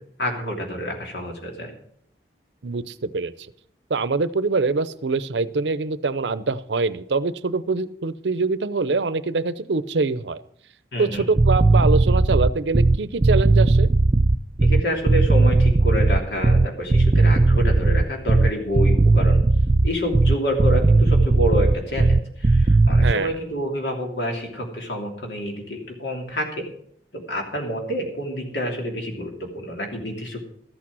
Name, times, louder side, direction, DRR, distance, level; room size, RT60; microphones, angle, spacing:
voice 1, 0.2-1.7 10.9-11.3 14.6-19.4 19.8-26.7 27.1-30.4, equal, 75° left, 2 dB, 3.0 m, -28 dB
voice 2, 2.6-3.3 3.9-10.4 11.0-13.9 23.0-23.3, right 4 dB, 85° right, 15 dB, 0.7 m, -24 dB
sound 1, 11.2-23.2, right 2 dB, 35° right, 0.4 m, -17 dB
13.0 x 8.8 x 6.1 m, 0.66 s
head